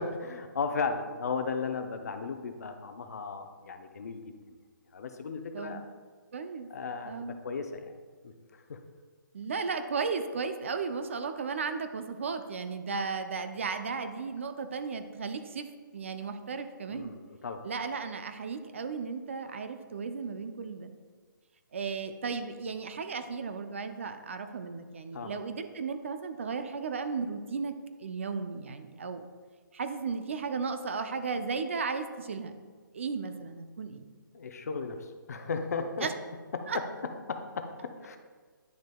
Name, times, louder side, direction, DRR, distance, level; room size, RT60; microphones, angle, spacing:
voice 1, 0.0-4.3 4.9-5.8 6.7-7.9 8.2-8.8 16.9-17.6 25.1-25.3 34.3-36.1 36.5-38.2, left 4 dB, 50° left, 7 dB, 0.7 m, -35 dB
voice 2, 6.3-6.7 7.0-7.4 9.3-15.7 15.9-17.1 17.6-20.9 21.7-27.7 28.0-29.3 29.7-32.5 32.9-34.1 36.0-36.1 36.7-36.8, right 5 dB, 35° right, 8 dB, 0.4 m, -35 dB
10.0 x 6.4 x 2.3 m, 1.5 s
hypercardioid pair, 170°, 11 cm